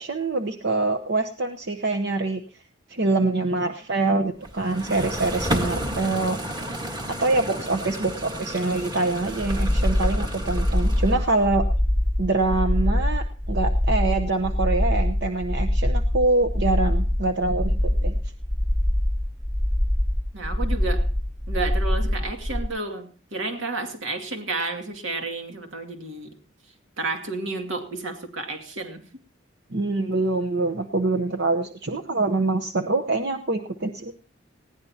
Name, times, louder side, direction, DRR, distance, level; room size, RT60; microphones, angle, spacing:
voice 1, 0.0-2.4 2.9-6.4 7.2-11.7 12.2-18.1 29.7-34.1, right 2 dB, 60° right, 6 dB, 0.9 m, -25 dB
sound 1, 4.4-11.4, equal, 25° right, 1.6 m, -32 dB
sound 2, 9.3-22.7, left 1 dB, ahead, 0.6 m, -24 dB
voice 2, 20.3-21.1 21.5-26.4 27.0-29.1, right 3 dB, 80° right, 3 dB, 2.5 m, -31 dB
20.0 x 15.5 x 2.8 m, 0.39 s
head